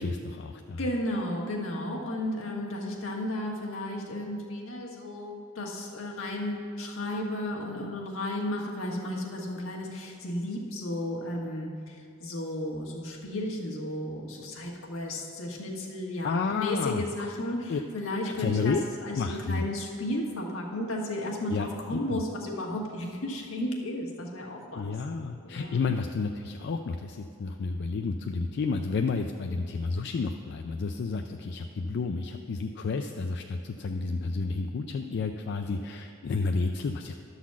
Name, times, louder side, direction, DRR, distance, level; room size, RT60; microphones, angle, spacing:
voice 1, 0.0-0.8 16.2-17.3 17.7-17.8 18.2-18.8 19.1-19.7 21.5-22.2 24.7-37.1, left 4 dB, 55° left, 5 dB, 0.4 m, -31 dB
voice 2, 0.8-25.0 25.4-25.9, left 1 dB, 75° left, -1 dB, 1.4 m, -33 dB
11.5 x 4.0 x 7.3 m, 2.5 s
head